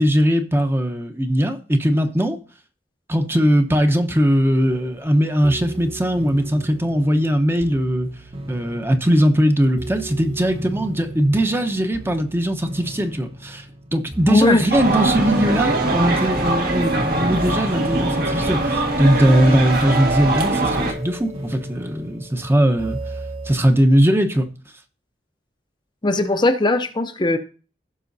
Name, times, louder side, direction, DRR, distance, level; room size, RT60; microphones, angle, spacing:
voice 1, 0.0-2.4 3.1-8.1 8.5-13.6 13.9-23.0 23.4-24.5, equal, 15° right, 0.9 m, -19 dB
sound 1, 4.7-23.6, right 1 dB, 35° right, 1.2 m, -35 dB
voice 2, 14.3-14.7 26.0-27.4, left 2 dB, 25° left, 0.7 m, -18 dB
sound 2, 14.7-20.9, right 2 dB, 60° right, 1.7 m, -22 dB
16.0 x 6.2 x 2.7 m
head